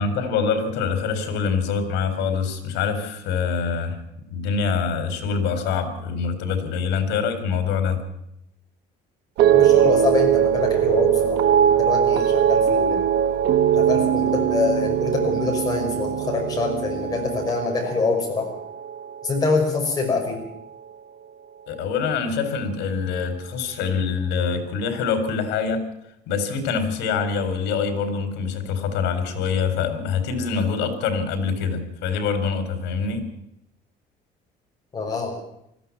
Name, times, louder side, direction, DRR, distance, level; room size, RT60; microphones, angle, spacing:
voice 1, 0.0-4.0 4.3-8.0 21.7-25.8 26.3-33.2, left 5 dB, 85° left, 9 dB, 4.4 m, -25 dB
sound 1, 9.4-19.8 20.0-20.6, right 9 dB, 70° right, 1.4 m, -21 dB
voice 2, 9.5-13.0 13.7-18.5 19.2-20.4 34.9-35.3, left 4 dB, 20° left, 1 dB, 5.8 m, -25 dB
20.0 x 14.5 x 8.8 m, 0.80 s
cardioid pair, 170°, 18 cm